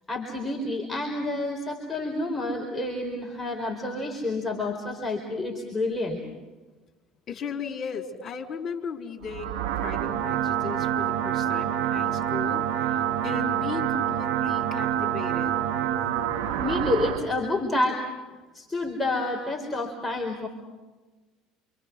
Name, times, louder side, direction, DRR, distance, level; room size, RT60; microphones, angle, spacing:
voice 1, 0.1-6.2 16.6-18.1 18.5-20.5, left 2 dB, 10° left, -1 dB, 4.7 m, -29 dB
voice 2, 7.3-15.6, left 6 dB, 45° left, 1 dB, 4.1 m, -36 dB
sound 1, 9.2-17.2, right 10 dB, 55° right, 4.6 m, -27 dB
28.5 x 26.5 x 6.2 m, 1.2 s
figure-of-eight pair, 65°, 0 cm